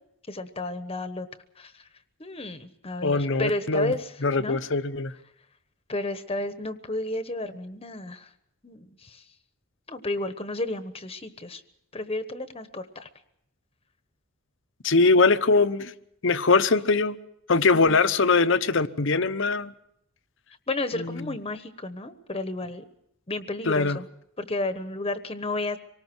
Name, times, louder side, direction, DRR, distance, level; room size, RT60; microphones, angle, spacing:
voice 1, 0.3-1.3 1.6-1.8 2.2-4.1 4.4-4.6 5.9-8.3 8.6-9.2 9.9-11.6 11.9-13.1 17.7-18.0 20.7-22.8 23.3-24.1 24.4-25.8, left 2 dB, 30° left, 1.2 m, -32 dB
voice 2, 3.0-3.9 4.2-5.1 14.8-15.9 16.2-17.1 17.5-19.7 20.9-21.3 23.7-24.0, left 3 dB, 65° left, 1.0 m, -22 dB
25.5 x 19.0 x 6.2 m
head